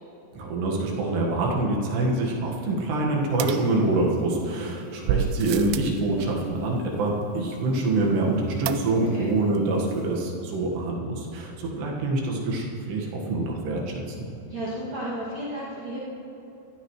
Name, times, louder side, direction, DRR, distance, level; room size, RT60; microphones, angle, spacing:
voice 1, 0.3-14.3, right 2 dB, 70° right, -1 dB, 3.7 m, -25 dB
sound 1, 3.4-4.4 5.1-6.0 8.7-9.3 9.6-9.7 9.9-10.0, right 7 dB, 90° right, 2.9 m, -30 dB
voice 2, 14.5-16.0, right 1 dB, 45° right, -10 dB, 3.3 m, -33 dB
23.0 x 14.5 x 3.2 m, 3.0 s
omnidirectional pair, 5.1 m